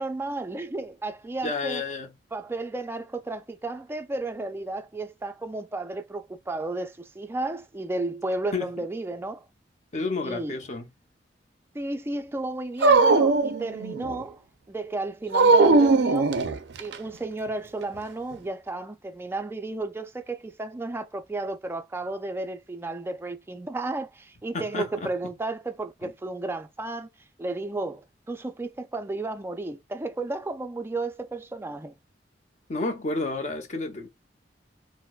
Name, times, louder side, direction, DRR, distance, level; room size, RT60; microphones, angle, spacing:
voice 1, 0.0-1.8 2.3-9.4 10.2-10.6 11.7-14.4 14.7-16.4 16.8-27.1 27.4-31.9, right 2 dB, 15° right, 0.3 m, -33 dB
voice 2, 1.4-2.1 8.5-8.8 9.9-10.9 24.5-25.1 26.0-26.1 32.7-34.1, left 3 dB, 45° left, 0.7 m, -31 dB
Dog, 12.8-14.2 15.3-17.0, right 3 dB, 80° right, 0.4 m, -19 dB
4.4 x 2.0 x 2.3 m
head